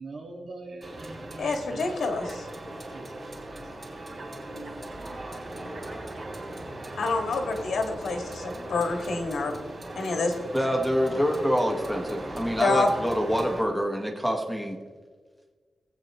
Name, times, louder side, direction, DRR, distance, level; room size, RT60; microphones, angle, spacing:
voice 1, 0.0-2.4 2.9-3.2 3.7-3.8 4.1-4.3 4.6-4.8 5.7-6.3, right 2 dB, 65° right, 0 dB, 1.7 m, -43 dB
sound 1, 0.8-13.6, right 1 dB, 40° right, 2.7 m, -39 dB
voice 2, 1.4-2.4 7.0-9.5 10.0-10.3 12.6-12.9, left 3 dB, 90° left, 3 dB, 1.8 m, -27 dB
voice 3, 10.5-14.8, equal, ahead, 1 dB, 1.1 m, -26 dB
19.5 x 8.4 x 3.0 m, 1.5 s
wide cardioid pair, 155°, 0 cm